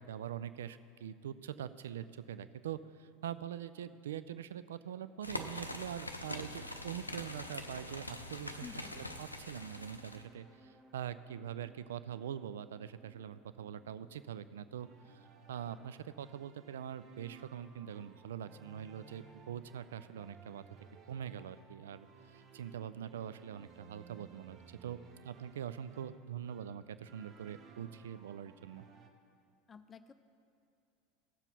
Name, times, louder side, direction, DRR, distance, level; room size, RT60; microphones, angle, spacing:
voice 1, 0.0-20.6 21.1-25.0 25.2-28.8, right 9 dB, 70° right, 14 dB, 0.3 m, -44 dB
sound 1, 5.2-10.2, left 1 dB, 90° left, 0.5 m, -44 dB
sound 2, 6.4-16.2, right 1 dB, 25° right, 1.2 m, -64 dB
voice 2, 8.6-9.0 29.7-30.1, left 6 dB, 25° left, 11 dB, 0.5 m, -50 dB
sound 3, 14.8-29.1, right 7 dB, 40° right, 0.8 m, -58 dB
16.0 x 7.1 x 4.1 m, 2.4 s
figure-of-eight pair, 75°, 0 cm